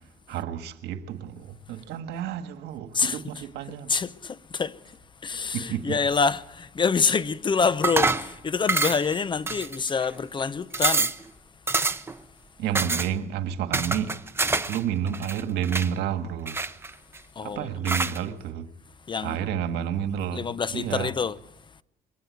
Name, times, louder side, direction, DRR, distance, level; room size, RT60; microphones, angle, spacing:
voice 1, 0.3-3.9 5.5-6.0 12.6-14.2 14.7-16.6 17.4-18.7 19.2-20.5 20.7-21.1, right 9 dB, 80° right, 1.7 m, -30 dB
voice 2, 2.9-4.8 5.2-11.1 17.4-17.7 19.1-19.4 20.3-21.4, left 5 dB, 30° left, 0.8 m, -26 dB
sound 1, 7.8-8.3 8.7-9.1 9.5-10.1 10.4-10.5 10.7-11.2 11.7-12.1 12.7-13.1 13.7-14.8 15.1-15.9 16.5-17.2 17.8-18.2, right 3 dB, 15° right, 0.9 m, -26 dB
22.5 x 17.0 x 9.4 m
cardioid pair, 110°, 17 cm